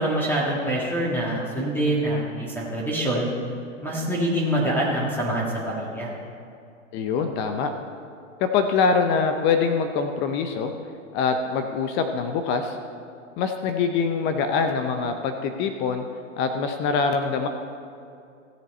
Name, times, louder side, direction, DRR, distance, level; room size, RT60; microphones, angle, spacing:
voice 1, 0.0-3.3 3.8-6.1, right 1 dB, 5° left, -5 dB, 1.8 m, -25 dB
voice 2, 6.9-7.7 8.4-10.7 11.1-12.8 13.4-16.0 16.4-17.5, left 5 dB, 30° left, 6 dB, 0.6 m, -24 dB
16.0 x 7.3 x 4.2 m, 2.5 s
hypercardioid pair, 120°, 39 cm